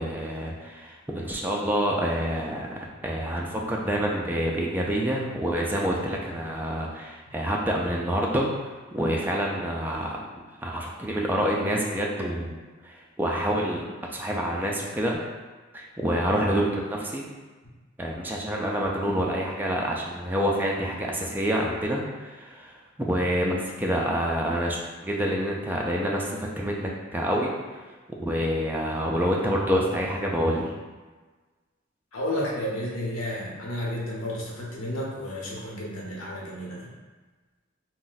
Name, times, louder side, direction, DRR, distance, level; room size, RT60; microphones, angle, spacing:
voice 1, 0.0-2.7 3.0-8.5 8.9-10.2 10.6-13.9 14.1-15.2 15.7-17.2 18.0-22.7 23.0-27.5 28.2-30.7, equal, 10° right, -2 dB, 0.3 m, -27 dB
voice 2, 32.1-36.9, left 1 dB, 90° left, -4 dB, 0.8 m, -32 dB
2.5 x 2.1 x 3.8 m, 1.3 s
head